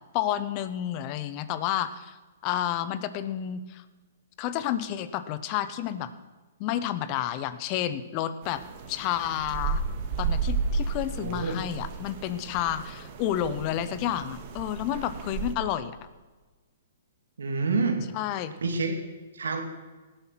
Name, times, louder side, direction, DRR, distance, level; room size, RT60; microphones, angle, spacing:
voice 1, 0.1-2.2 2.4-3.8 4.4-6.1 6.6-8.6 8.9-9.8 10.2-16.0 18.1-18.5, left 11 dB, 35° left, 13 dB, 1.0 m, -30 dB
sound 1, 8.4-15.5, right 4 dB, 45° right, 1.8 m, -33 dB
voice 2, 11.2-11.6 17.4-18.0 18.6-19.0 19.3-19.6, right 4 dB, 85° right, 4 dB, 2.7 m, -27 dB
18.0 x 8.1 x 5.9 m, 1.3 s
hypercardioid pair, 135°, 0 cm